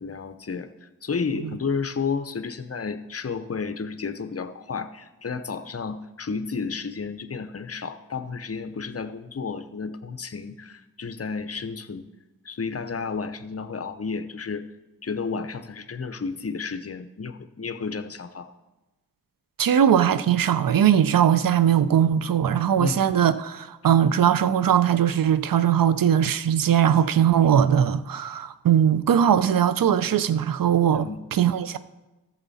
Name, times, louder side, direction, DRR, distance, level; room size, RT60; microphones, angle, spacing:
voice 1, 0.0-12.1 12.4-14.6 15.0-18.6 22.8-23.1 30.9-31.2, left 5 dB, 40° left, 0.8 m, -32 dB
voice 2, 19.6-31.8, right 9 dB, 70° right, 0.6 m, -20 dB
13.5 x 7.1 x 4.2 m
cardioid pair, 55°, 36 cm